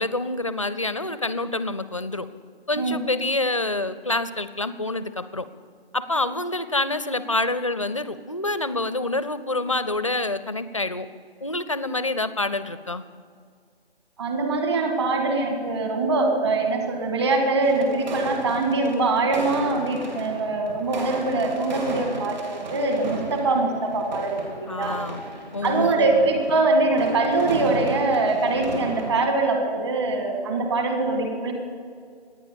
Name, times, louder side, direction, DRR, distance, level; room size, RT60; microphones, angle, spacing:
voice 1, 0.0-2.3 2.7-5.4 5.9-11.1 11.4-13.0 24.7-25.2 25.5-26.2, left 2 dB, 30° left, 14 dB, 0.5 m, -27 dB
voice 2, 14.2-25.0 25.6-31.5, right 3 dB, 25° right, 3 dB, 1.8 m, -23 dB
sound 1, 17.6-29.2, right 2 dB, 45° right, 3.0 m, -35 dB
25.0 x 9.7 x 5.2 m, 2.2 s
figure-of-eight pair, 160°, 32 cm